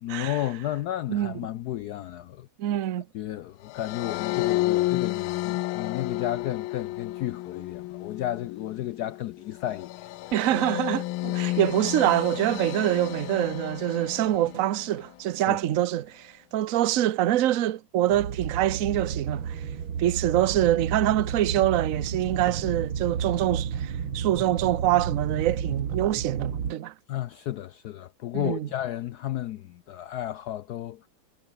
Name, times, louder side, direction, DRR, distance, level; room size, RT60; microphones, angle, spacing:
voice 1, 0.0-2.5 3.1-10.1 15.5-15.6 27.1-31.1, left 13 dB, 70° left, 1.0 m, -33 dB
voice 2, 2.6-3.1 10.3-19.6 20.0-26.9 28.3-28.7, right 13 dB, 55° right, 1.0 m, -25 dB
sound 1, 3.7-15.0, left 18 dB, 90° left, 1.4 m, -31 dB
sound 2, 18.1-26.7, right 7 dB, 85° right, 2.8 m, -32 dB
omnidirectional pair, 2.2 m